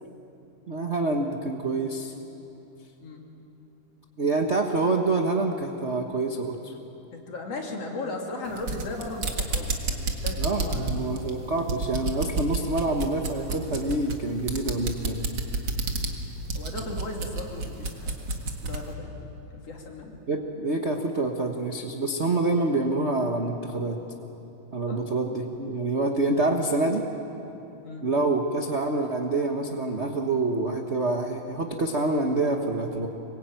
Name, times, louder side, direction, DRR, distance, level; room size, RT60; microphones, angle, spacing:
voice 1, 0.7-2.1 4.2-6.7 10.4-15.2 20.3-24.0 24.7-27.0 28.0-33.1, right 2 dB, 60° right, 3 dB, 0.6 m, -26 dB
voice 2, 7.1-11.1 16.5-18.2 18.6-19.2 19.5-20.2 24.9-25.0 27.8-28.0, left 2 dB, 55° left, 0 dB, 3.7 m, -36 dB
sound 1, 8.5-18.9, right 3 dB, 40° right, 2.2 m, -30 dB
25.5 x 22.0 x 9.1 m, 3.0 s
omnidirectional pair, 3.5 m